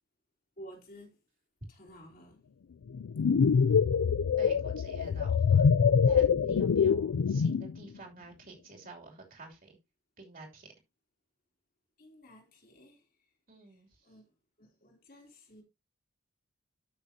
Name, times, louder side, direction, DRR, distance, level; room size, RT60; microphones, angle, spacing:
voice 1, 0.6-1.2 1.7-2.4 12.0-13.1 13.7-14.2 14.6-15.6, equal, 40° left, 3.2 m, -53 dB
sound 1, 2.9-7.7, left 6 dB, 70° left, 0.4 m, -25 dB
voice 2, 4.4-5.7 6.0-9.8 10.2-10.7 13.5-14.1, right 3 dB, 40° right, 3.0 m, -50 dB
13.0 x 6.3 x 2.8 m
head